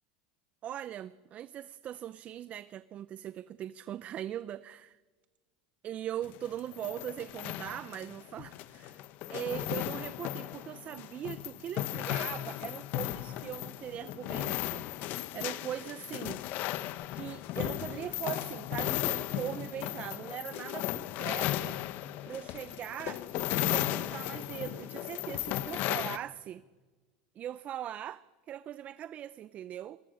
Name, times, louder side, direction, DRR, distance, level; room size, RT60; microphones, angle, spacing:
voice 1, 0.6-5.0 5.8-9.0 9.3-16.4 17.1-21.8 22.3-26.6 27.4-30.0, right 11 dB, 40° right, 0.6 m, -40 dB
sound 1, 6.2-26.2, left 14 dB, 55° left, 1.0 m, -35 dB
25.5 x 20.5 x 6.5 m
supercardioid pair, 120°, 4 cm